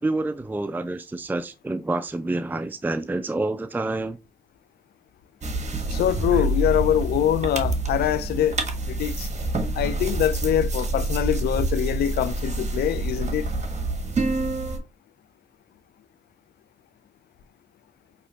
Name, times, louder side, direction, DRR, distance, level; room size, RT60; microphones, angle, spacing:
voice 1, 0.0-4.2 6.3-6.5, right 2 dB, 10° right, 0.4 m, -28 dB
sound 1, 5.4-14.8, right 2 dB, 45° right, 1.2 m, -27 dB
voice 2, 5.9-9.3 9.8-13.5, left 11 dB, 85° left, 0.4 m, -24 dB
5.6 x 3.0 x 2.8 m
supercardioid pair, 50°, 16 cm